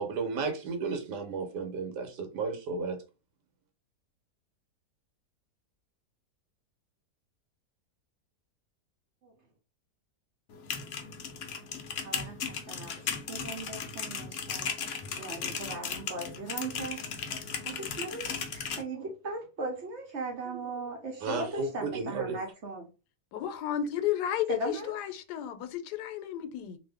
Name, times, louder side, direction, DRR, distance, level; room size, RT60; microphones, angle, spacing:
voice 1, 0.0-3.0 21.2-22.4, right 4 dB, 85° right, 1.4 m, -33 dB
sound 1, 10.5-18.8, left 6 dB, 65° left, 0.8 m, -36 dB
voice 2, 12.0-14.7 15.2-17.0 17.6-22.9 24.5-25.0, right 2 dB, 55° right, 0.9 m, -38 dB
voice 3, 23.3-24.6 24.9-26.8, left 10 dB, 80° left, 1.1 m, -32 dB
2.6 x 2.6 x 3.3 m
omnidirectional pair, 1.8 m